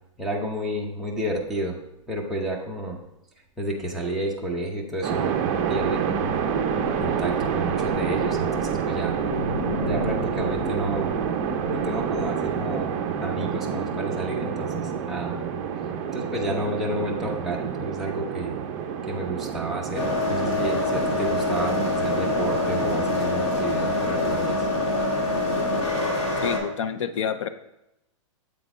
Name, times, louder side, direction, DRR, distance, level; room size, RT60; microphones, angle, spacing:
voice 1, 0.2-1.8 2.1-3.0 3.6-6.4 7.0-9.2 9.8-11.1 11.7-15.5 16.1-18.6 19.0-24.7, right 1 dB, ahead, -4 dB, 0.8 m, -31 dB
sound 1, 5.0-23.1, right 7 dB, 35° right, 0.7 m, -28 dB
sound 2, 5.3-13.5, left 1 dB, 40° left, 1.2 m, -36 dB
sound 3, 19.9-26.6, left 2 dB, 55° left, 2.5 m, -25 dB
voice 2, 26.4-27.5, left 7 dB, 70° left, 10 dB, 0.7 m, -28 dB
7.9 x 3.9 x 4.9 m, 0.86 s
hypercardioid pair, 160°, 16 cm